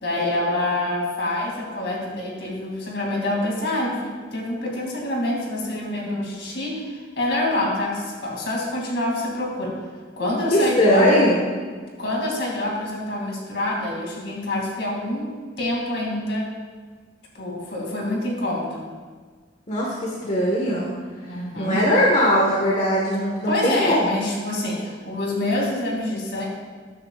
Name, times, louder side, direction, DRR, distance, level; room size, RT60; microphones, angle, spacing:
voice 1, 0.0-9.7 10.2-11.1 12.0-16.5 17.3-18.9 21.3-21.8 23.4-26.5, left 1 dB, 65° left, -2 dB, 2.6 m, -26 dB
voice 2, 10.5-11.4 19.7-20.9 21.6-24.1, equal, 40° left, -4 dB, 1.5 m, -20 dB
13.5 x 9.6 x 2.4 m, 1.5 s
head